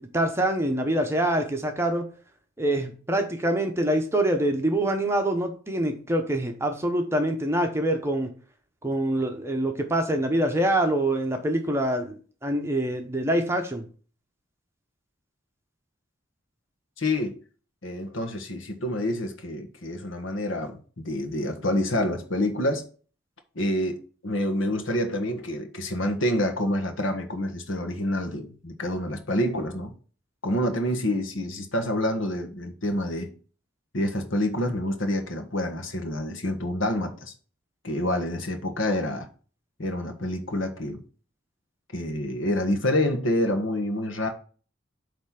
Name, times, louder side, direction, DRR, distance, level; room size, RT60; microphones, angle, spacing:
voice 1, 0.0-2.0 2.6-8.3 8.8-13.8, right 1 dB, 10° right, 0.9 m, -25 dB
voice 2, 17.0-17.4 17.8-22.9 23.5-24.0 24.2-29.9 30.4-33.3 33.9-37.3 37.8-39.3 39.8-41.0 41.9-44.3, left 1 dB, 70° left, 1.4 m, -27 dB
8.2 x 3.4 x 5.9 m
head